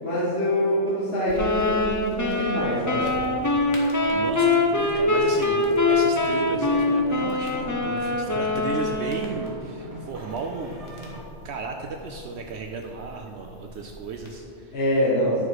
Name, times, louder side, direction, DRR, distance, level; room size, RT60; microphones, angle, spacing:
voice 1, 0.0-3.1 14.7-15.4, equal, 60° left, -9 dB, 1.8 m, -25 dB
sound 1, 1.3-14.4, left 1 dB, 90° left, 1.8 m, -44 dB
sound 2, 1.4-9.4, left 2 dB, 20° left, 0.5 m, -23 dB
sound 3, 3.3-11.2, equal, 30° right, 1.5 m, -44 dB
voice 2, 3.8-10.8 11.4-14.8, right 4 dB, 70° right, 3 dB, 0.9 m, -35 dB
10.5 x 6.1 x 4.8 m, 2.8 s
omnidirectional pair, 1.2 m